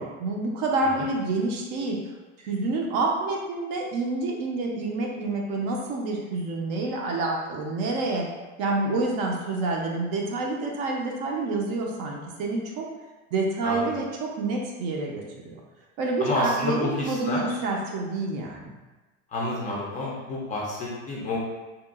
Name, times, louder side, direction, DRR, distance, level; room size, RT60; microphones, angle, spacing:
voice 1, 0.0-2.0 2.4-8.3 8.6-12.9 13.3-15.6 16.0-18.7, right 3 dB, 55° right, 0 dB, 0.6 m, -28 dB
voice 2, 16.2-17.5 19.3-21.4, left 2 dB, 25° left, -4 dB, 0.4 m, -29 dB
2.8 x 2.3 x 2.3 m, 1.2 s
supercardioid pair, 140°, 35 cm